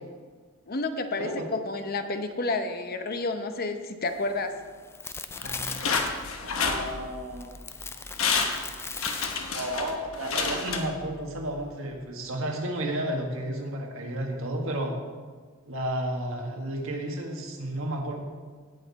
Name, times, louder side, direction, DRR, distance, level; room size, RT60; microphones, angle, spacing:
voice 1, 0.7-4.5, left 3 dB, 45° left, 7 dB, 0.8 m, -30 dB
sound 1, 4.1-9.9, left 4 dB, 10° left, 0.4 m, -40 dB
sound 2, 5.4-7.4 7.8-7.9 8.2-11.3 11.7-11.8, left 5 dB, 75° left, 1.1 m, -30 dB
voice 2, 6.6-7.5 7.9-8.0 9.5-15.0 15.7-18.2, right 1 dB, 70° right, 1 dB, 1.7 m, -32 dB
17.0 x 6.6 x 4.1 m, 1.6 s
head